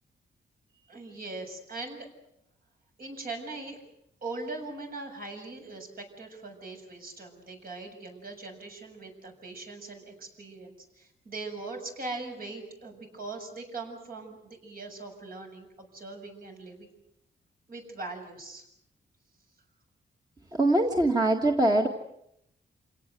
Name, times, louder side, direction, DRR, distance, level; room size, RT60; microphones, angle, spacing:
voice 1, 0.9-2.1 3.0-3.8 4.2-16.9 17.7-18.6, right 3 dB, 60° right, 3 dB, 7.3 m, -41 dB
voice 2, 20.5-21.9, right 1 dB, 20° right, 3 dB, 1.8 m, -23 dB
28.5 x 18.0 x 9.3 m, 0.78 s
wide cardioid pair, 135°, 17 cm